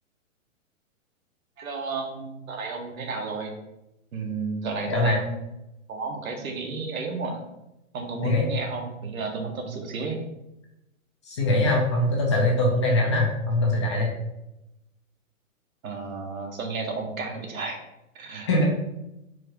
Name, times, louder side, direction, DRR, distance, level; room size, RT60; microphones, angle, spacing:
voice 1, 1.6-3.5 4.1-5.4 5.9-7.4 7.9-10.2 15.8-17.8 18.1-18.7, right 4 dB, 80° right, 2 dB, 1.2 m, -32 dB
voice 2, 4.9-5.2 8.2-8.5 11.2-14.1 18.5-18.7, left 1 dB, 20° left, -1 dB, 0.5 m, -22 dB
4.7 x 2.6 x 4.4 m, 0.91 s
hypercardioid pair, 155°, 41 cm